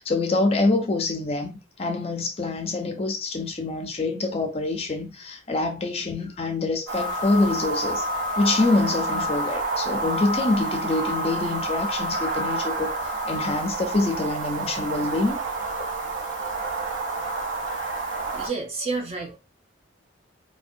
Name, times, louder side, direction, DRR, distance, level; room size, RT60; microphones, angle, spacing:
voice 1, 0.0-8.1 8.4-15.4, left 3 dB, 30° left, 0.4 m, -25 dB
sound 1, 6.9-18.5, right 2 dB, 90° right, 0.6 m, -29 dB
voice 2, 17.6-19.4, right 3 dB, 35° right, 0.6 m, -32 dB
2.5 x 2.1 x 2.5 m
head